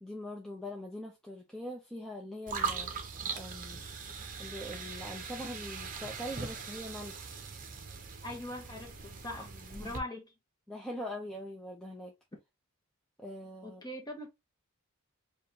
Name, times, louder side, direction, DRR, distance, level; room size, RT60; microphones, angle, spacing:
voice 1, 0.0-3.1 3.4-3.8 4.4-7.3 9.3-10.0 10.7-12.1 13.2-13.8, left 1 dB, 5° left, 0.6 m, -42 dB
sound 1, 2.5-10.0, right 5 dB, 40° right, 0.8 m, -40 dB
voice 2, 8.2-9.5 9.8-10.3 12.3-12.4 13.6-14.3, left 1 dB, 20° left, 1.0 m, -41 dB
4.9 x 2.4 x 2.8 m
head